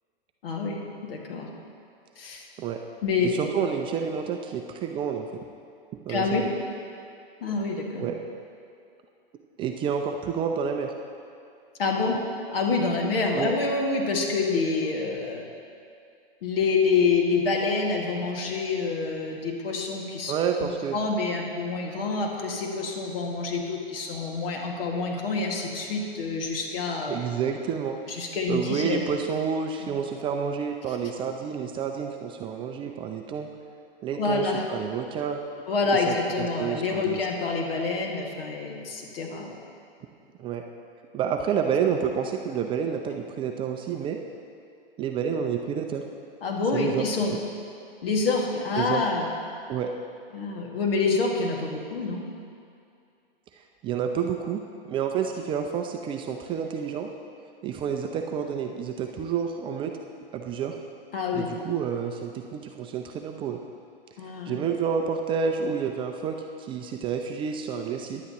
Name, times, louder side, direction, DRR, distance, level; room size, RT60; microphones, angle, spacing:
voice 1, 0.4-1.5 2.2-2.5 3.0-3.3 6.1-6.4 7.4-8.1 11.8-12.2 12.5-15.5 16.4-20.3 20.6-27.3 28.1-29.1 34.1-34.7 35.7-39.6 46.4-47.4 48.0-49.3 50.3-52.3 61.1-61.5 64.2-64.6, left 4 dB, 70° left, 0 dB, 2.0 m, -27 dB
voice 2, 3.2-5.5 6.0-6.5 8.0-8.2 9.6-10.9 13.3-13.5 20.2-21.0 27.1-28.0 28.5-33.5 34.0-35.4 35.9-37.2 40.4-40.6 41.1-44.2 45.0-46.0 46.7-47.1 48.8-49.0 49.7-49.9 53.6-57.1 57.6-59.9 60.3-60.7 61.3-63.6 64.4-68.2, right 7 dB, 15° right, 4 dB, 0.4 m, -29 dB
15.5 x 10.5 x 3.0 m, 2.4 s
hypercardioid pair, 125°, 30 cm